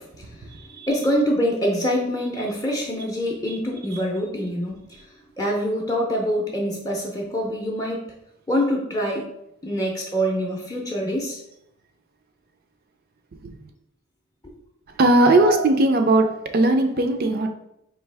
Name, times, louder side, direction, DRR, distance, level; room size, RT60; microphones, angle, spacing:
voice 1, 0.0-4.8 5.4-8.1 8.5-9.2 9.6-11.4 14.4-14.5 15.3-15.6, equal, 15° left, -1 dB, 0.6 m, -25 dB
voice 2, 0.5-0.9 13.4-13.6 15.0-17.5, right 2 dB, 45° right, 6 dB, 0.5 m, -19 dB
4.5 x 2.8 x 3.3 m, 0.77 s
head